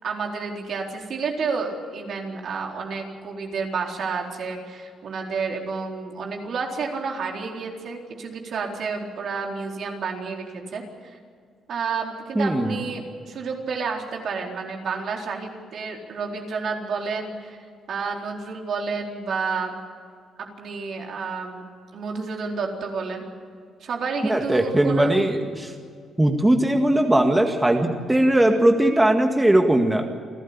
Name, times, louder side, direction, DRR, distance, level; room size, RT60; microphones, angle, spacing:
voice 1, 0.0-11.2 11.7-17.6 17.9-19.7 20.4-21.6 21.9-23.2 23.8-25.1, right 5 dB, 60° right, 1 dB, 4.1 m, -30 dB
voice 2, 12.4-12.8 24.3-25.7 26.2-30.1, right 1 dB, 10° right, 4 dB, 2.0 m, -19 dB
29.5 x 12.5 x 8.8 m, 2.2 s
cardioid pair, 90°, 0 cm